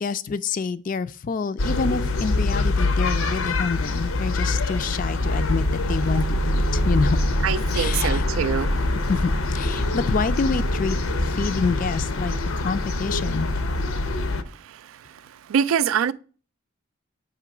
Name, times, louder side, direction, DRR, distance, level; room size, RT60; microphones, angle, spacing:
voice 1, 0.0-7.2 7.7-8.3 9.1-13.5, left 4 dB, 40° left, 0.3 m, -27 dB
sound 1, 1.6-14.4, left 2 dB, 85° left, 0.7 m, -24 dB
voice 2, 7.4-8.8 14.6-15.0 15.5-16.1, right 8 dB, 80° right, 0.3 m, -24 dB
8.3 x 3.0 x 5.9 m
head